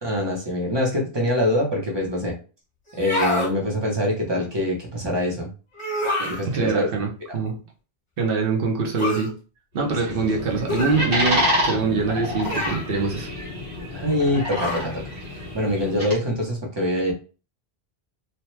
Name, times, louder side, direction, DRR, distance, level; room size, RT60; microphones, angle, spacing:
voice 1, 0.0-2.3 3.0-5.5 6.3-6.9 7.3-7.4 13.9-15.0 15.5-17.1, left 1 dB, 30° right, -2 dB, 0.7 m, -24 dB
sound 1, 2.9-3.5 5.8-6.4 9.0-9.3 10.7-11.1 12.4-12.9 14.5-14.9, left 1 dB, 30° left, 0.9 m, -27 dB
voice 2, 6.2-7.5 8.2-9.3 9.7-13.3, right 4 dB, 60° right, 1 dB, 0.9 m, -24 dB
sound 2, 9.8-16.1, equal, 85° right, 1.5 m, -28 dB
2.8 x 2.2 x 3.1 m, 0.35 s
omnidirectional pair, 1.1 m